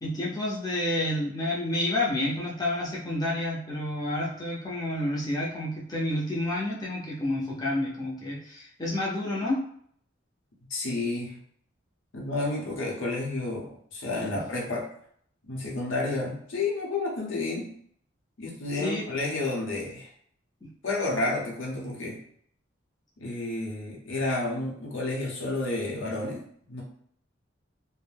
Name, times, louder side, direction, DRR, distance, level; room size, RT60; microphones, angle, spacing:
voice 1, 0.0-9.6 18.7-19.0 20.6-20.7, left 1 dB, 20° left, -5 dB, 0.6 m, -29 dB
voice 2, 10.7-11.4 12.1-14.9 15.4-17.7 18.4-20.1 20.8-22.2 23.2-26.4 26.7-26.8, left 2 dB, 80° left, -2 dB, 0.8 m, -30 dB
2.5 x 2.1 x 3.2 m, 0.63 s
head